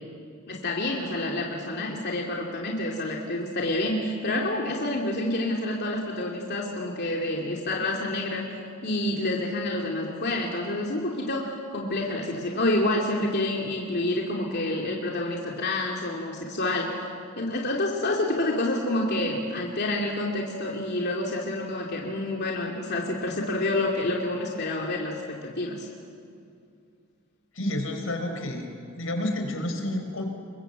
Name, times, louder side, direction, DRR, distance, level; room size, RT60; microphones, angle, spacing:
voice 1, 0.5-8.4 8.8-17.0 17.4-25.9, left 1 dB, 55° left, -1 dB, 2.8 m, -28 dB
voice 2, 27.5-28.7 28.9-30.2, left 1 dB, 80° left, 4 dB, 4.5 m, -29 dB
27.5 x 23.0 x 8.2 m, 2.4 s
head